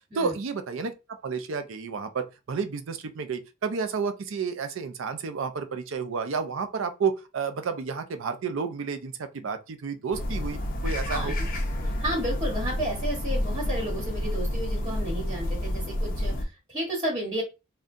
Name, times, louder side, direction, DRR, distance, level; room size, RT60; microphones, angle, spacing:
voice 1, 0.1-0.9 1.2-11.4, right 5 dB, 70° right, 0.5 m, -31 dB
sound 1, 10.1-16.4, left 1 dB, 45° left, 0.6 m, -29 dB
voice 2, 11.1-11.5 11.8-17.4, right 1 dB, 25° right, 1.3 m, -32 dB
3.6 x 2.2 x 2.6 m
head